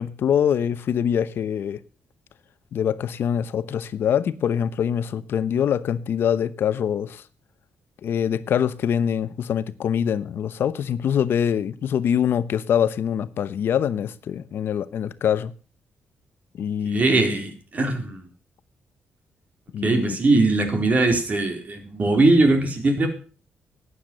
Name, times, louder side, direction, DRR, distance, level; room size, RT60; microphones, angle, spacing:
voice 1, 0.0-1.8 2.7-7.2 8.0-15.5 16.5-17.2 19.7-20.2, left 8 dB, 70° left, 0.9 m, -24 dB
voice 2, 16.9-18.2 19.8-23.1, right 2 dB, 40° right, 4.0 m, -20 dB
12.0 x 9.5 x 6.7 m
cardioid pair, 95°, 4 cm